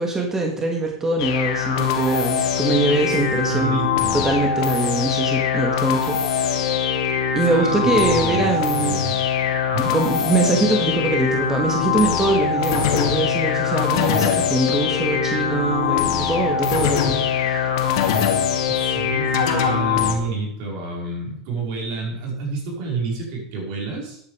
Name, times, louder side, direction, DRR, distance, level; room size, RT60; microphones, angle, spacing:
voice 1, 0.0-3.9 4.1-6.9 7.3-9.0 9.9-17.7, right 2 dB, 15° right, 1 dB, 2.0 m, -23 dB
sound 1, 1.2-20.1, left 7 dB, 70° left, 2.1 m, -22 dB
voice 2, 3.5-4.2 7.4-9.1 9.7-10.0 18.7-24.2, right 4 dB, 65° right, 0 dB, 5.0 m, -29 dB
12.5 x 8.9 x 5.1 m, 0.71 s
supercardioid pair, 115°, 3 cm